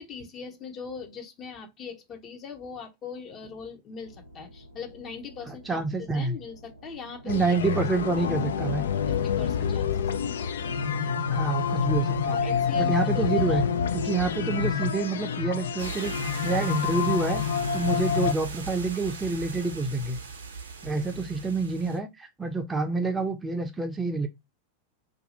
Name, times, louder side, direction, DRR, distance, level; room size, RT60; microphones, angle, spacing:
voice 1, 0.0-7.7 9.1-10.2 12.3-14.0, left 6 dB, 30° left, 0.7 m, -41 dB
sound 1, 4.0-20.0, equal, 90° left, 1.0 m, -51 dB
voice 2, 5.5-6.4 7.2-8.8 11.3-12.4 12.8-13.6 13.9-17.4 17.7-20.2 20.8-24.3, right 3 dB, 15° right, 0.5 m, -28 dB
sound 2, 7.3-18.3, left 7 dB, 65° left, 0.4 m, -27 dB
sound 3, 15.8-22.0, right 5 dB, 70° right, 0.7 m, -39 dB
2.6 x 2.3 x 4.0 m
figure-of-eight pair, 90°, 0 cm